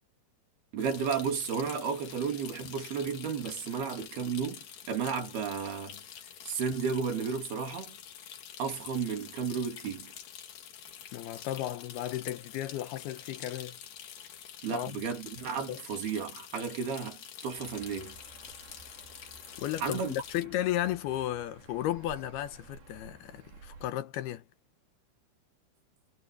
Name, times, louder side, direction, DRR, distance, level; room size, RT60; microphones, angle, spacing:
voice 1, 0.7-6.0 6.5-8.0 8.6-10.1 14.6-18.2 19.8-20.2, right 6 dB, 70° right, 5.2 m, -33 dB
sound 1, 0.8-20.5, left 9 dB, 60° left, 3.1 m, -47 dB
voice 2, 11.1-13.8 14.7-15.1 15.7-15.8 19.6-24.4, left 13 dB, 80° left, 2.9 m, -34 dB
sound 2, 17.5-23.9, right 5 dB, 85° right, 6.9 m, -53 dB
omnidirectional pair, 4.7 m